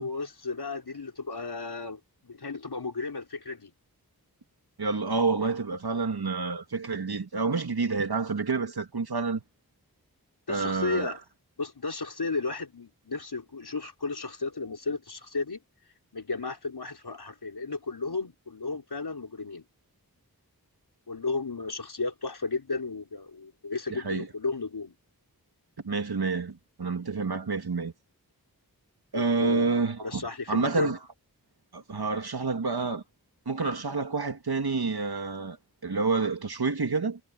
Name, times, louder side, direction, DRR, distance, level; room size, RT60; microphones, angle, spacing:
voice 1, 0.0-3.7 10.5-11.2 11.6-15.6 16.1-19.6 21.1-24.9 29.1-29.7 30.0-30.9, left 3 dB, 90° left, 4.5 m, -34 dB
voice 2, 4.8-9.4 10.5-11.1 23.9-24.3 25.8-27.9 29.1-30.2 30.5-31.0 31.7-33.0 33.5-35.6 35.8-37.2, right 4 dB, 80° right, 2.5 m, -28 dB
wide cardioid pair, 45°, 37 cm